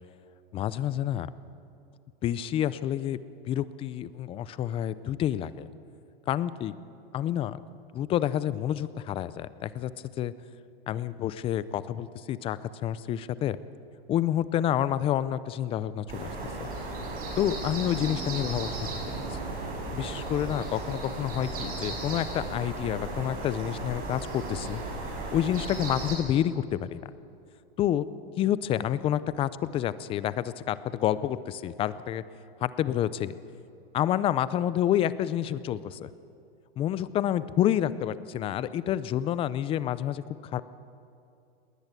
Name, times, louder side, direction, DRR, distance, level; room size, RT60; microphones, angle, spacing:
voice 1, 0.5-1.3 2.2-3.2 3.5-5.7 6.3-6.7 7.1-7.6 7.9-9.9 10.2-10.3 10.9-13.6 14.1-16.7 17.4-18.7 19.3-19.4 19.9-24.8 25.3-27.1 27.8-28.0 28.4-32.2 32.6-33.3 33.9-36.1 36.8-40.2 40.5-40.6, left 11 dB, 20° left, 16 dB, 0.5 m, -28 dB
sound 1, 16.1-26.1, right 2 dB, 30° right, 6.0 m, -35 dB
20.0 x 19.5 x 8.1 m, 2.7 s
supercardioid pair, 145°, 30 cm